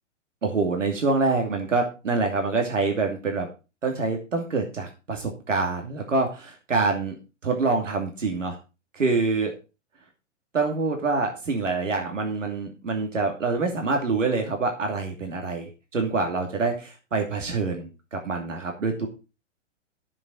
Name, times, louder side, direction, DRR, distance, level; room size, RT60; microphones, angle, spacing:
voice 1, 0.4-3.5 3.8-7.2 7.4-8.6 8.9-9.5 10.5-19.1, right 3 dB, 80° right, 2 dB, 2.7 m, -26 dB
10.5 x 7.4 x 5.0 m, 0.30 s
hypercardioid pair, 115°, 37 cm